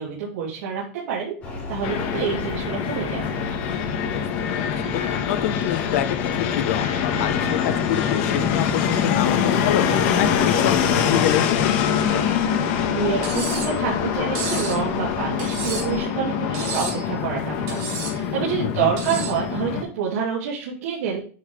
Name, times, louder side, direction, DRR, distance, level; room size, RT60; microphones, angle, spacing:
voice 1, 0.0-1.3 1.7-3.3 12.9-21.2, right 7 dB, 75° right, -5 dB, 2.8 m, -27 dB
sound 1, 1.4-16.0, left 3 dB, 20° left, 3.9 m, -35 dB
Fixed-wing aircraft airplane, 1.8-19.8, left 8 dB, 45° left, 1.2 m, -24 dB
voice 2, 4.6-9.9 10.2-12.3 18.6-18.9, left 12 dB, 65° left, 9 dB, 0.7 m, -27 dB
Cutlery silverware, 13.2-13.8 14.4-14.8 15.4-16.0 16.5-17.0 17.7-18.2 19.0-19.4, right 5 dB, 40° right, 3.4 m, -31 dB
8.7 x 5.8 x 3.2 m, 0.41 s
supercardioid pair, 180°, 8 cm